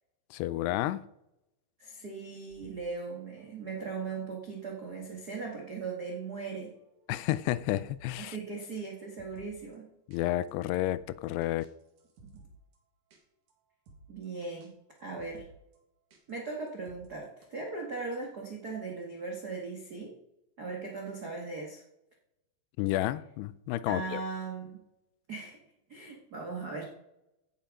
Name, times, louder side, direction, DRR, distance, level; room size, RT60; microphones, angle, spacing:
voice 1, 0.3-1.0 7.1-8.4 10.1-11.7 22.8-24.2, left 15 dB, 85° left, 2.7 m, -31 dB
voice 2, 1.8-6.7 8.2-9.9 14.1-14.7 15.0-15.5 16.3-20.1 20.6-21.8 23.9-24.8 25.3-25.6 25.9-26.8, right 4 dB, 75° right, 0.8 m, -38 dB
sound 1, 2.5-8.3 8.6-8.7 9.0-9.8 10.1-10.2 10.5-10.6 10.9-12.8 13.1-13.2 13.5-13.6 13.9-14.7 15.0-15.8 16.1-17.5, right 2 dB, 55° right, 3.1 m, -58 dB
15.5 x 7.2 x 5.2 m
omnidirectional pair, 4.7 m